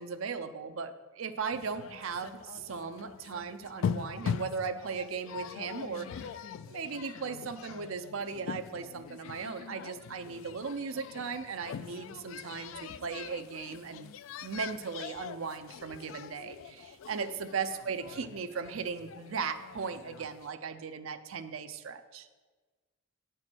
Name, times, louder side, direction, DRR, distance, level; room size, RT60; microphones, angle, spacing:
voice 1, 0.0-6.3 6.7-14.1 14.4-22.3, right 5 dB, 75° right, 9 dB, 0.5 m, -37 dB
sound 1, 1.5-20.5, left 7 dB, 75° left, 0.3 m, -42 dB
8.8 x 4.5 x 6.1 m, 1.4 s
head